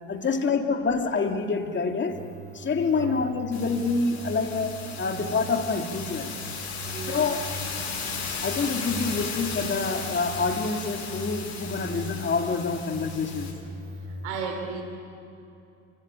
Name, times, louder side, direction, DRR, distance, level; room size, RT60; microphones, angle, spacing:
voice 1, 0.1-2.2 2.5-6.4 7.1-7.4 8.4-13.6, left 4 dB, 35° left, 4 dB, 2.4 m, -27 dB
sound 1, 2.1-14.3, right 2 dB, 55° right, 4.6 m, -40 dB
voice 2, 2.8-3.2 6.8-7.4 14.0-14.8, right 5 dB, 90° right, 4 dB, 3.1 m, -36 dB
sound 2, 3.5-13.5, left 5 dB, 50° left, 8.0 m, -36 dB
27.0 x 17.5 x 8.8 m, 2.7 s
hypercardioid pair, 75°, 34 cm